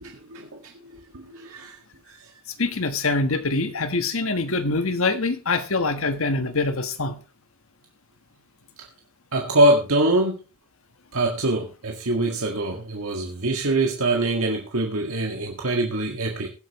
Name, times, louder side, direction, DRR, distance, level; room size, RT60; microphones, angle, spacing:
voice 1, 0.0-0.4 1.1-1.7 9.3-10.4 11.1-16.5, right 2 dB, 80° right, 0 dB, 1.8 m, -23 dB
voice 2, 2.6-7.2, left 3 dB, 70° left, 10 dB, 1.3 m, -24 dB
21.0 x 8.2 x 3.1 m, 0.32 s
head